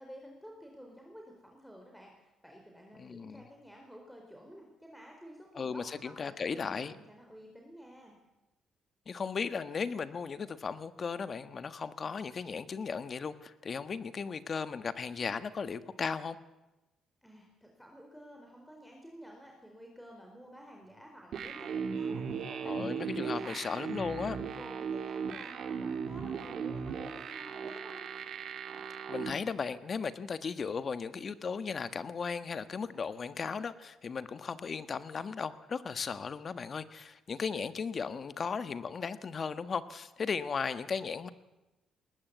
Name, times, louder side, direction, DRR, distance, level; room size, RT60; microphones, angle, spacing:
voice 1, 0.0-8.2 17.2-22.7 23.1-23.8 24.1-28.0, equal, ahead, 1 dB, 4.3 m, -51 dB
voice 2, 2.9-3.4 5.5-6.9 9.1-16.4 22.6-24.4 29.1-41.3, left 5 dB, 45° left, 12 dB, 1.4 m, -36 dB
sound 1, 21.3-29.3, right 6 dB, 65° right, 2.4 m, -37 dB
20.5 x 19.0 x 8.2 m, 1.0 s
cardioid pair, 90°, 0 cm